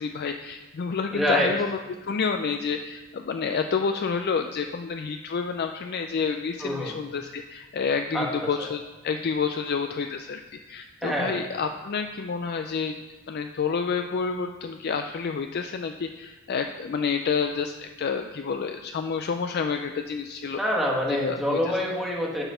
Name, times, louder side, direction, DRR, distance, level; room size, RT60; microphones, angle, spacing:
voice 1, 0.0-10.4 10.7-13.0 13.3-20.6 21.2-21.6, left 5 dB, 45° left, 6 dB, 0.3 m, -29 dB
voice 2, 1.1-1.5 6.6-7.0 8.1-8.7 11.0-11.4 20.6-22.4, equal, ahead, -4 dB, 1.4 m, -26 dB
7.8 x 6.1 x 5.5 m, 1.2 s
head